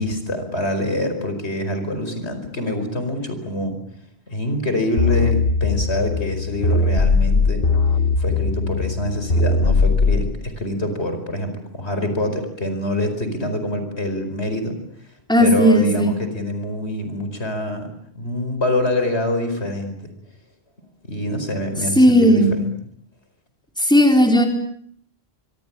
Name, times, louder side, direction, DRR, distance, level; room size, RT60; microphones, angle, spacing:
voice 1, 0.0-3.8 4.3-7.6 8.2-14.8 15.4-17.9 18.1-20.1 21.0-22.7, left 1 dB, 85° left, 8 dB, 5.1 m, -25 dB
sound 1, 5.0-10.3, left 3 dB, 60° left, 1.7 m, -19 dB
voice 2, 15.3-16.1 22.0-22.5 23.8-24.5, equal, 5° left, 3 dB, 4.5 m, -14 dB
25.5 x 24.0 x 8.8 m, 0.67 s
omnidirectional pair, 1.1 m